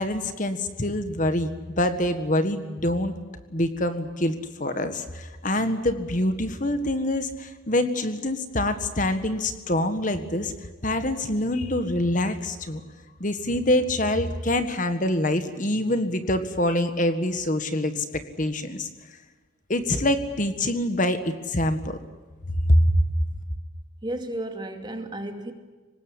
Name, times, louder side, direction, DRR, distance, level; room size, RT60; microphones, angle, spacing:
voice 1, 0.0-3.2 3.5-10.5 10.8-12.8 13.2-18.0 18.4-18.9 19.7-22.0 22.7-23.0, left 1 dB, 40° left, 1.6 m, -25 dB
voice 2, 24.0-25.5, right 1 dB, 20° right, 2.4 m, -33 dB
25.0 x 20.0 x 9.8 m
head